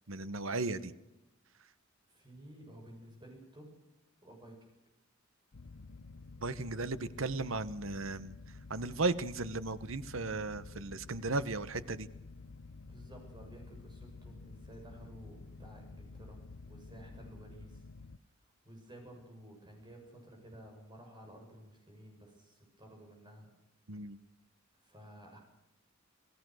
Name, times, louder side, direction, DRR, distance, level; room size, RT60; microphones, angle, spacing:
voice 1, 0.1-0.9 6.4-8.3 8.7-12.1 23.9-24.2, right 3 dB, 75° right, 14 dB, 1.1 m, -35 dB
voice 2, 2.1-3.7 4.2-4.7 12.8-17.8 18.6-23.5 24.8-25.4, right 1 dB, 20° right, 2 dB, 7.4 m, -53 dB
sound 1, 5.5-18.2, left 3 dB, 70° left, 0.8 m, -51 dB
28.0 x 17.0 x 6.4 m, 0.93 s
head